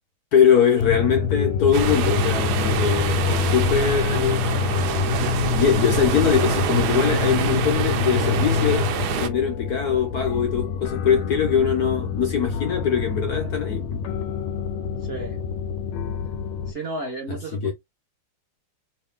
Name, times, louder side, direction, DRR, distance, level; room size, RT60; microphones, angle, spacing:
voice 1, 0.3-4.5 5.4-8.9 9.2-14.0 17.3-17.7, left 7 dB, 60° left, 1.1 m, -22 dB
sound 1, 0.8-16.7, left 7 dB, 75° left, 1.3 m, -26 dB
sound 2, 1.7-9.3, right 7 dB, 75° right, 0.9 m, -26 dB
voice 2, 15.0-15.4 16.7-17.7, right 2 dB, 40° right, 1.0 m, -33 dB
3.2 x 2.7 x 3.5 m
omnidirectional pair, 2.3 m